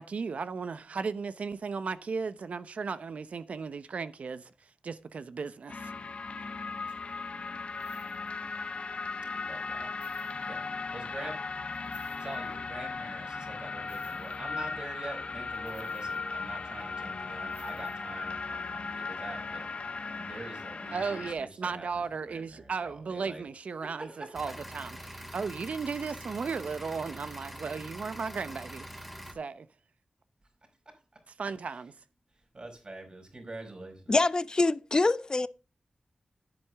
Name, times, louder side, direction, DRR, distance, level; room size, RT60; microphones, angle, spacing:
voice 1, 0.0-4.5 4.8-5.9 20.9-28.9 29.3-29.7 31.4-31.9, right 5 dB, 85° right, 0.8 m, -35 dB
sound 1, 5.7-21.3, left 4 dB, 60° left, 0.9 m, -37 dB
sound 2, 6.9-7.1 7.7-8.4 9.2-9.3 9.8-10.7 11.7-12.5 13.8-14.7 15.5-16.8 17.5-18.2 18.7-18.8, right 3 dB, 70° right, 4.0 m, -60 dB
voice 2, 9.3-9.9 10.4-10.6 10.9-11.4 12.2-19.7 20.1-23.4 23.8-24.5 30.9-31.0 31.7-31.8 32.4-34.2, right 2 dB, 45° right, 5.3 m, -45 dB
sound 3, 24.3-29.3, equal, ahead, 2.3 m, -44 dB
voice 3, 34.1-35.5, left 2 dB, 35° left, 0.5 m, -25 dB
10.5 x 8.9 x 3.5 m
wide cardioid pair, 70°, 2 cm